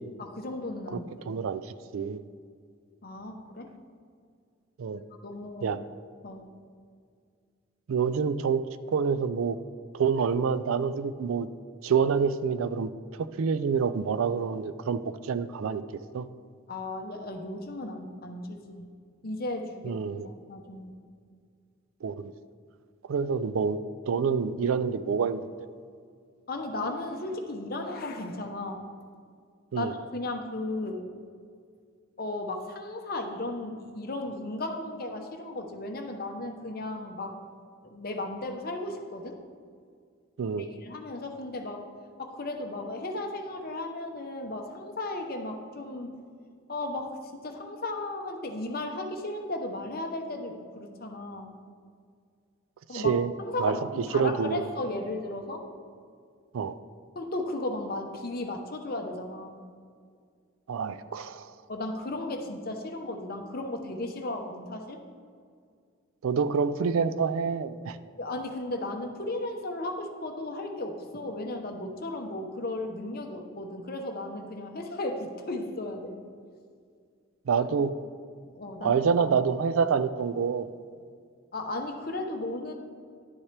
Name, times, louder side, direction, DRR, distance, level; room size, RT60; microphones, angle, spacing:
voice 1, 0.2-1.1 3.0-3.7 5.2-5.7 6.2-6.5 16.7-18.9 19.2-20.0 20.2-21.0 26.5-28.9 29.8-31.0 32.2-37.4 37.8-39.4 40.7-41.9 42.2-46.2 46.7-51.5 52.9-53.1 53.4-55.6 57.1-59.6 61.7-65.0 68.2-76.2 78.4-79.0 81.5-82.7, left 2 dB, 45° left, 4 dB, 0.8 m, -35 dB
voice 2, 1.3-2.2 4.8-5.0 5.6-5.8 7.9-8.6 8.9-9.6 9.9-11.5 11.8-15.0 15.3-15.8 16.1-16.3 19.8-20.3 22.0-22.3 23.1-23.8 24.1-25.5 29.7-29.9 40.4-40.7 52.9-53.3 53.6-53.8 54.1-54.6 56.5-56.8 60.7-61.5 66.2-68.0 77.5-77.9 78.8-80.7, right 6 dB, 70° right, 13 dB, 0.4 m, -27 dB
11.5 x 7.2 x 3.3 m, 2.2 s
head